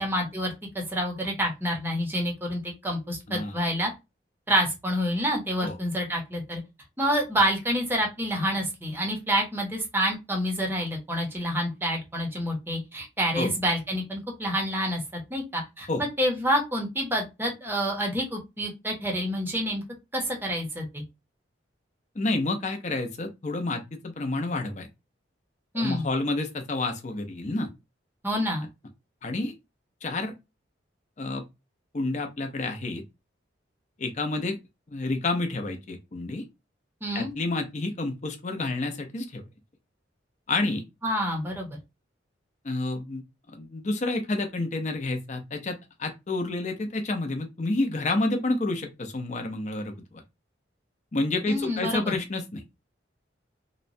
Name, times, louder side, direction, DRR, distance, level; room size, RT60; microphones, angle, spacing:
voice 1, 0.0-3.9 4.5-6.6 7.0-19.8 20.1-21.0 25.7-26.1 28.2-28.7 37.0-37.3 41.0-41.8 51.5-52.1, equal, 10° right, 0.7 m, -28 dB
voice 2, 22.2-24.9 25.7-27.7 29.2-29.5 30.0-30.3 31.2-31.4 31.9-33.0 34.0-34.6 34.9-36.4 37.1-39.4 40.5-40.8 42.6-43.2 43.5-50.2 51.1-52.6, left 2 dB, 40° left, 0.6 m, -29 dB
2.9 x 2.2 x 2.5 m
head